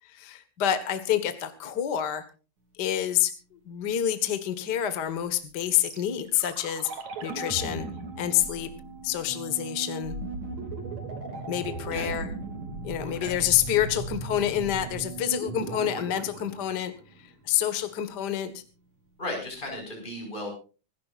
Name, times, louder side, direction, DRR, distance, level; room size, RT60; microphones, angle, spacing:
voice 1, 0.1-2.2 2.8-6.9 7.2-7.9 8.2-8.7 9.0-10.2 11.5-12.3 12.8-16.9 17.4-18.6, left 11 dB, 45° left, 10 dB, 1.5 m, -27 dB
sound 1, 5.6-17.6 17.8-17.9, right 4 dB, 55° right, 3.6 m, -37 dB
voice 2, 19.2-20.5, left 1 dB, 15° left, 2 dB, 5.9 m, -35 dB
26.0 x 14.0 x 2.5 m, 0.35 s
omnidirectional pair, 3.9 m